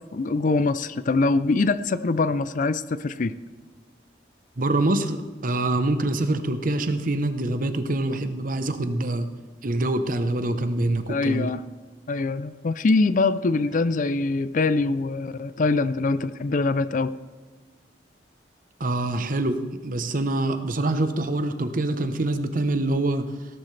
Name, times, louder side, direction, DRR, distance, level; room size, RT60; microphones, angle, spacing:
voice 1, 0.0-3.3 11.1-11.6 12.1-17.1, left 3 dB, 45° left, 14 dB, 0.4 m, -23 dB
voice 2, 4.6-9.3 9.6-11.5 18.8-23.3, right 2 dB, 50° right, 9 dB, 0.9 m, -25 dB
17.0 x 12.0 x 3.3 m, 1.4 s
head